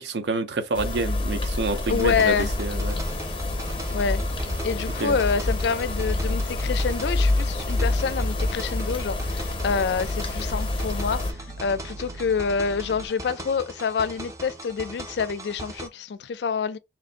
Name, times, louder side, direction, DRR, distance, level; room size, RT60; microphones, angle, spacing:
voice 1, 0.0-3.0 5.0-5.2, right 3 dB, 80° right, 0.5 m, -28 dB
sound 1, 0.7-11.3, left 2 dB, 30° left, 0.6 m, -27 dB
sound 2, 1.8-15.9, right 1 dB, 20° right, 0.4 m, -40 dB
voice 2, 1.9-2.5 2.9-3.2 3.9-4.2 4.6-11.2 11.6-16.8, left 5 dB, 75° left, 0.4 m, -27 dB
sound 3, 3.4-13.1, right 1 dB, 60° right, 0.8 m, -41 dB
3.0 x 2.5 x 3.8 m
head